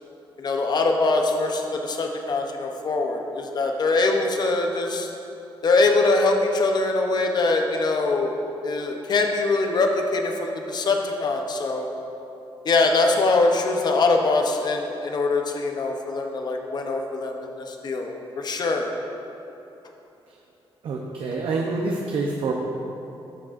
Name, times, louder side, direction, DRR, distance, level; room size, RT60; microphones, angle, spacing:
voice 1, 0.4-5.1 5.6-11.9 12.6-18.9, left 3 dB, 45° left, 3 dB, 0.7 m, -23 dB
voice 2, 20.8-22.5, right 3 dB, 70° right, -1 dB, 0.7 m, -26 dB
13.5 x 6.0 x 2.5 m, 3.0 s
cardioid pair, 105°, 10 cm